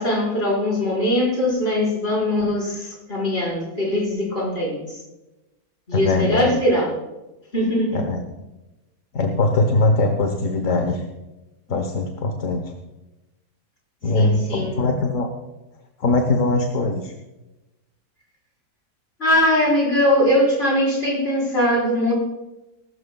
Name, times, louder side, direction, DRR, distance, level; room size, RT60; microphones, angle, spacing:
voice 1, 0.0-5.0 5.9-7.0 7.5-8.0 14.1-14.8 19.2-22.1, left 1 dB, 35° left, -5 dB, 5.3 m, -21 dB
voice 2, 5.9-6.5 7.9-8.2 9.1-11.0 11.7-12.7 14.0-15.3 16.0-17.1, left 2 dB, 55° left, 5 dB, 1.4 m, -21 dB
20.0 x 12.5 x 2.3 m, 1.0 s
omnidirectional pair, 1.8 m